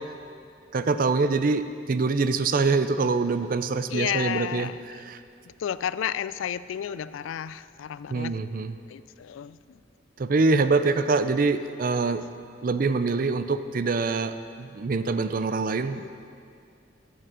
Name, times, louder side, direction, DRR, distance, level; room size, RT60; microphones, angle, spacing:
voice 1, 0.7-4.7 5.1-5.2 8.1-8.7 10.2-12.2 12.6-16.1, right 3 dB, 45° right, 11 dB, 0.4 m, -24 dB
voice 2, 3.9-5.0 5.6-8.4 8.9-9.8 11.0-11.1 15.9-16.1, left 9 dB, 90° left, 16 dB, 0.3 m, -32 dB
11.0 x 8.1 x 6.3 m, 2.4 s
head